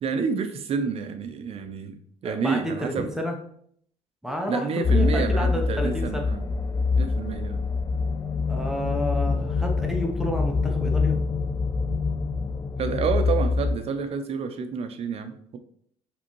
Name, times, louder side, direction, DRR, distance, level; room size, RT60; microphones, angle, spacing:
voice 1, 0.0-2.0 2.2-3.1 4.5-6.4 6.9-7.6 12.8-15.6, right 6 dB, 50° right, 8 dB, 0.6 m, -29 dB
voice 2, 2.2-3.3 4.2-4.7 4.9-6.3 8.5-11.2, equal, 5° right, 1 dB, 0.7 m, -30 dB
sound 1, 4.8-13.8, left 4 dB, 25° left, 0.5 m, -25 dB
5.0 x 3.5 x 3.0 m, 0.65 s
supercardioid pair, 85°, 13 cm